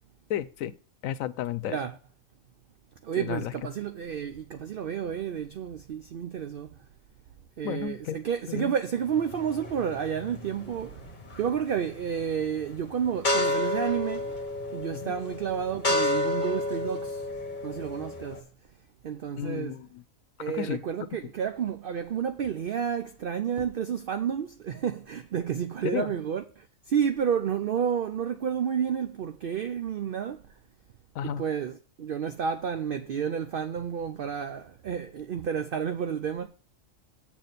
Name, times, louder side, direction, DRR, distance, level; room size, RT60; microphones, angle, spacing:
voice 1, 0.3-0.7 1.0-1.8 3.2-3.5 7.6-8.2 8.5-8.7 15.0-15.1 19.4-20.0 20.5-20.8 25.8-26.1 31.1-31.4, left 10 dB, 80° left, 1.0 m, -32 dB
voice 2, 3.0-6.8 7.6-11.1 11.3-14.4 14.7-17.2 17.6-18.5 19.0-19.8 20.4-30.4 31.2-36.5, right 8 dB, 60° right, 0.6 m, -30 dB
sound 1, 9.1-18.4, left 2 dB, 35° left, 1.3 m, -31 dB
7.5 x 4.2 x 6.6 m
omnidirectional pair, 1.4 m